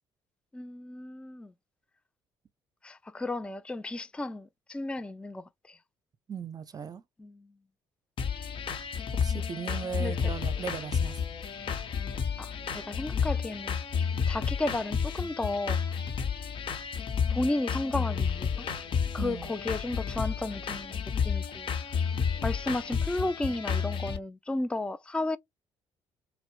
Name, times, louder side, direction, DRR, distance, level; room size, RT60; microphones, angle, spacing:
voice 1, 0.5-1.5 2.8-5.8 7.2-7.5 10.0-10.3 12.4-13.8 14.3-15.8 17.3-18.7 19.1-21.7 22.4-25.4, left 2 dB, 10° left, 0.4 m, -33 dB
voice 2, 6.3-7.0 9.2-11.2 19.2-19.5, right 7 dB, 35° right, 0.7 m, -37 dB
sound 1, 8.2-24.2, left 6 dB, 55° left, 0.9 m, -31 dB
4.2 x 2.1 x 2.4 m
hypercardioid pair, 55°, 11 cm